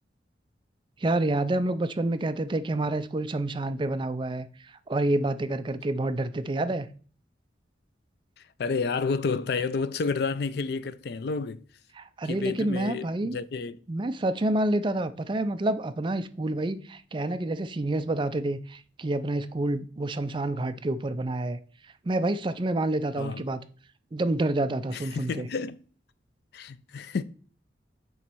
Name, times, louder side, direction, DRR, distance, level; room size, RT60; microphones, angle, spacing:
voice 1, 1.0-6.9 12.0-13.4 13.9-21.6 22.0-23.6 24.1-25.5, right 2 dB, 25° right, 0.4 m, -28 dB
voice 2, 8.6-11.7 12.2-13.8 23.2-23.4 24.9-25.8 26.5-27.2, left 4 dB, 60° left, 0.4 m, -30 dB
7.1 x 3.1 x 6.0 m
head